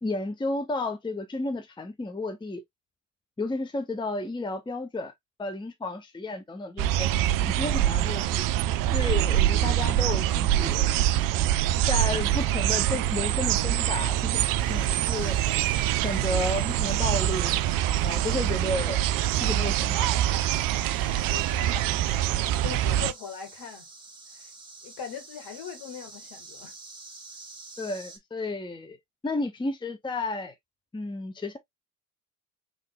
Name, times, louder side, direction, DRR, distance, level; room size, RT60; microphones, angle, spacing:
voice 1, 0.0-2.6 3.4-5.1 5.4-7.1 7.5-8.5 8.9-10.9 11.9-14.4 14.7-15.4 16.0-17.5 18.0-19.0 19.4-20.3 27.8-29.0 29.2-30.5 30.9-31.6, left 2 dB, 10° left, 0.8 m, -32 dB
sound 1, 6.8-23.1, right 12 dB, 50° right, 0.5 m, -25 dB
sound 2, 14.6-28.2, right 3 dB, 10° right, 1.9 m, -46 dB
voice 2, 21.3-21.9 22.6-23.9 24.3-24.5 24.8-26.8, left 8 dB, 55° left, 2.0 m, -40 dB
3.8 x 3.2 x 3.5 m
hypercardioid pair, 60°, 46 cm